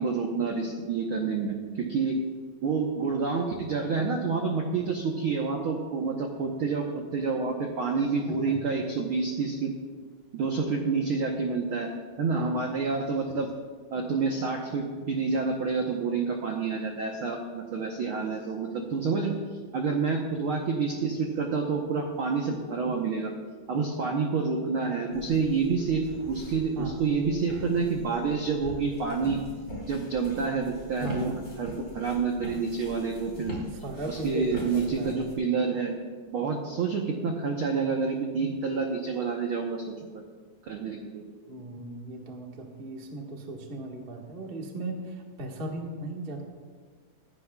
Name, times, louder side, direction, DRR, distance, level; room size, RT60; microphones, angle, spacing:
voice 1, 0.0-2.2 2.6-9.7 10.3-11.9 12.2-13.5 13.9-19.4 19.7-23.3 23.7-29.4 29.9-33.6 34.1-36.0 36.3-40.2 40.6-41.2, right 4 dB, 75° right, 1 dB, 1.2 m, -28 dB
voice 2, 8.3-8.6 12.3-12.6 26.7-27.0 31.0-31.4 33.8-35.2 41.5-46.4, right 2 dB, 40° right, 0 dB, 0.7 m, -37 dB
sound 1, 25.1-35.3, left 1 dB, 20° left, 3.9 m, -42 dB
23.5 x 11.5 x 2.3 m, 1.5 s
omnidirectional pair, 3.8 m